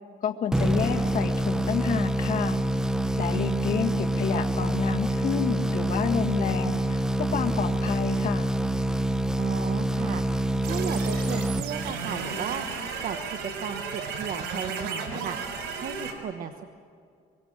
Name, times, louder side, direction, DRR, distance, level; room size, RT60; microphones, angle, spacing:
voice 1, 0.2-2.6 3.2-8.5, left 8 dB, 50° left, 3 dB, 1.8 m, -29 dB
sound 1, 0.5-12.2, right 1 dB, 5° right, 0.7 m, -26 dB
voice 2, 9.4-10.2 10.6-12.6 13.0-15.4 15.8-16.6, right 8 dB, 55° right, 7 dB, 1.3 m, -35 dB
sound 2, 10.6-16.1, right 5 dB, 85° right, 5.3 m, -34 dB
24.5 x 24.0 x 7.5 m, 2.3 s
cardioid pair, 110°, 17 cm